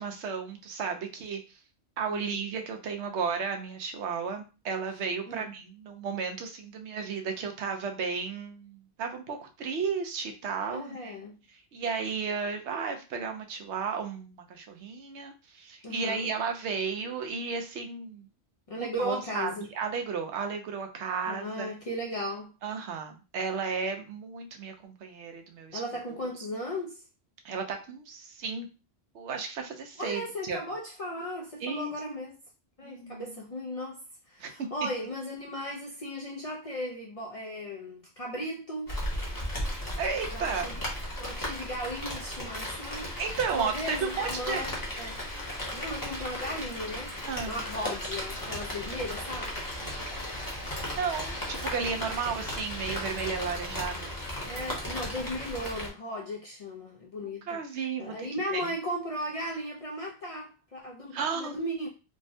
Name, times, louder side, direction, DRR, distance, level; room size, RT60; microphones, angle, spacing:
voice 1, 0.0-1.6 2.0-11.2 11.5-18.3 18.8-21.7 22.6-25.8 27.4-28.7 29.1-30.6 31.6-31.9 32.8-33.3 34.4-34.7 40.0-40.7 43.2-44.7 47.2-47.6 50.9-54.2 57.2-58.1 58.5-58.7 61.1-61.6, right 5 dB, 80° right, 0.9 m, -34 dB
voice 2, 2.1-2.4 5.3-5.5 10.7-11.4 15.8-16.3 18.7-19.6 21.3-22.5 25.7-27.0 30.0-32.3 32.8-39.0 40.3-40.8 41.2-43.1 43.5-45.2 45.7-47.1 47.5-49.6 54.3-57.6 58.0-61.9, equal, 55° left, 0.4 m, -36 dB
Rain, 38.9-55.9, left 1 dB, 20° left, 0.8 m, -36 dB
3.3 x 2.1 x 2.6 m
omnidirectional pair, 1.1 m